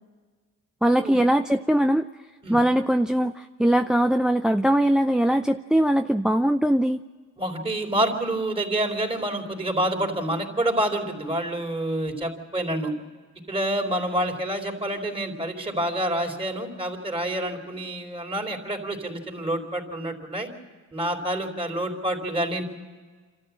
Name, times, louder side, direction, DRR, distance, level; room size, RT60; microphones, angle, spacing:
voice 1, 0.8-2.1 2.5-7.0, right 1 dB, ahead, 8 dB, 0.6 m, -21 dB
voice 2, 7.4-12.9 13.5-20.5 20.9-22.6, right 1 dB, 20° right, 4 dB, 4.0 m, -27 dB
27.5 x 13.5 x 8.6 m, 1.4 s
cardioid pair, 90°, 30 cm